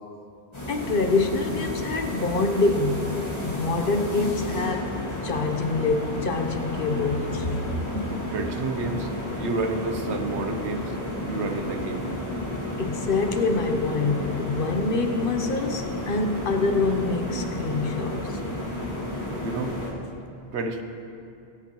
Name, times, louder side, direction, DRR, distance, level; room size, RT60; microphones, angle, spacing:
sound 1, 0.5-19.9, left 1 dB, 25° left, 2.4 m, -32 dB
voice 1, 0.7-4.9 5.2-7.6 12.8-18.4, left 3 dB, 55° left, 5 dB, 1.0 m, -26 dB
voice 2, 7.9-12.1 19.4-19.7 20.5-20.8, right 3 dB, 80° right, 6 dB, 1.2 m, -30 dB
23.5 x 8.5 x 3.0 m, 2.7 s
omnidirectional pair, 1.1 m